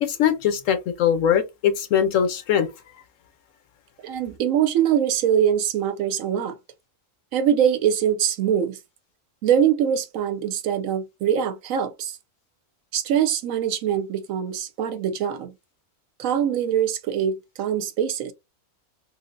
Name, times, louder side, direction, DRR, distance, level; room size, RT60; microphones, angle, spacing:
voice 1, 0.0-2.7, left 9 dB, 70° left, 0.9 m, -21 dB
voice 2, 4.0-6.6 7.3-8.8 9.4-12.2 12.9-15.5 16.2-18.3, right 9 dB, 70° right, 0.9 m, -23 dB
3.3 x 2.7 x 2.5 m
omnidirectional pair, 1.5 m